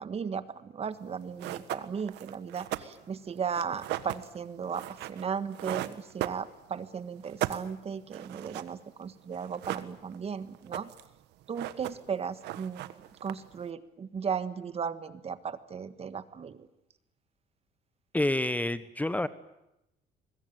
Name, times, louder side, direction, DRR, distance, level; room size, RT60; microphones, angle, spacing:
voice 1, 0.0-10.9 11.5-16.7, right 6 dB, 35° right, 13 dB, 1.5 m, -36 dB
sound 1, 1.0-1.1 1.4-6.9 7.2-9.0 9.3-10.3 10.5-11.1 11.4-12.2 12.4-13.6, right 15 dB, 85° right, 1.5 m, -37 dB
voice 2, 18.1-19.3, left 1 dB, 10° left, 14 dB, 1.1 m, -28 dB
24.5 x 21.5 x 9.3 m, 0.85 s
cardioid pair, 110°, 17 cm